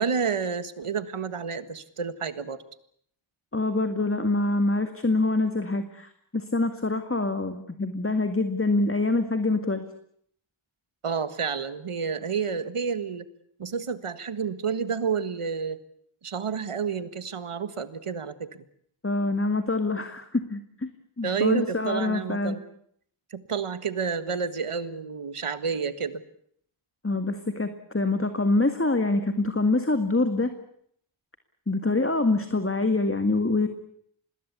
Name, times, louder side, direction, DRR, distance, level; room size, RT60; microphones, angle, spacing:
voice 1, 0.0-2.6 11.0-13.3 13.6-15.8 16.2-18.6 21.2-22.6 23.3-26.2, right 6 dB, 90° right, 12 dB, 1.7 m, -30 dB
voice 2, 3.5-9.8 19.0-22.6 27.0-30.5 31.7-33.7, left 2 dB, 25° left, 8 dB, 2.0 m, -25 dB
26.0 x 20.5 x 8.4 m, 0.67 s
wide cardioid pair, 55°, 50 cm